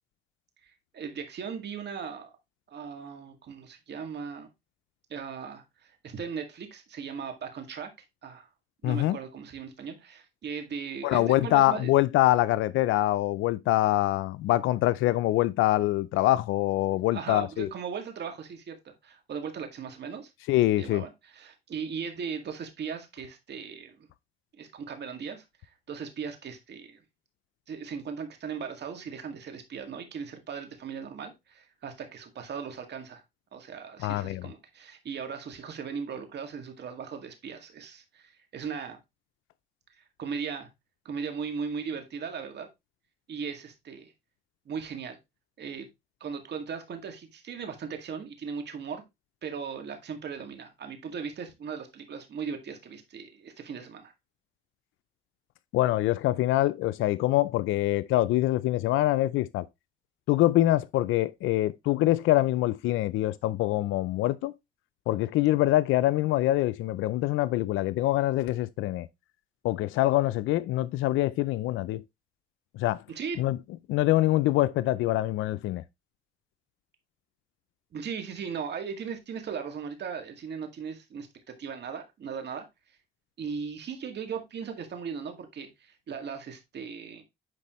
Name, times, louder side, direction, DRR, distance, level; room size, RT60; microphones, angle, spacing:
voice 1, 0.6-2.3 2.7-4.5 5.1-7.9 8.2-8.5 8.8-11.9 17.1-20.3 20.8-24.1 24.5-27.0 27.7-33.2 33.5-39.0 39.9-40.7 41.1-42.7 43.3-44.1 44.7-45.2 45.6-45.9 46.2-49.0 49.4-54.1 73.1-73.4 77.9-83.0 83.4-87.2, right 6 dB, 60° right, 2.0 m, -38 dB
voice 2, 8.8-9.2 11.0-17.7 20.5-21.0 34.0-34.5 55.7-59.7 60.3-64.5 65.1-69.1 69.6-72.0 72.7-73.0 73.4-73.6 73.9-75.8, left 15 dB, 90° left, 0.4 m, -24 dB
9.8 x 4.1 x 3.0 m
cardioid pair, 90°, 20 cm